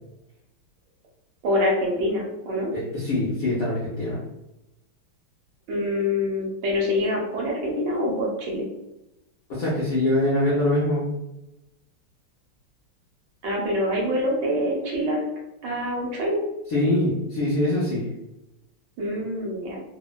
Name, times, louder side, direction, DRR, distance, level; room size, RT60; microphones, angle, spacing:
voice 1, 1.4-2.7 5.7-8.7 13.4-15.2 15.6-16.4 19.0-19.8, left 1 dB, 75° right, -2 dB, 1.3 m, -25 dB
voice 2, 2.7-4.2 9.5-11.1 16.7-18.0, left 1 dB, 70° left, -7 dB, 0.8 m, -23 dB
3.3 x 2.1 x 2.2 m, 0.93 s
omnidirectional pair, 2.3 m